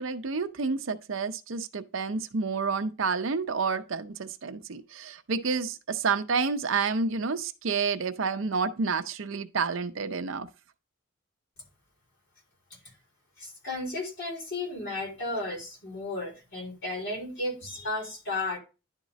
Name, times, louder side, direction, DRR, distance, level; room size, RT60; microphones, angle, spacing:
voice 1, 0.0-10.5, right 5 dB, 65° right, 0.6 m, -29 dB
voice 2, 13.4-18.6, left 2 dB, 55° left, 4.1 m, -34 dB
10.5 x 3.7 x 4.0 m
head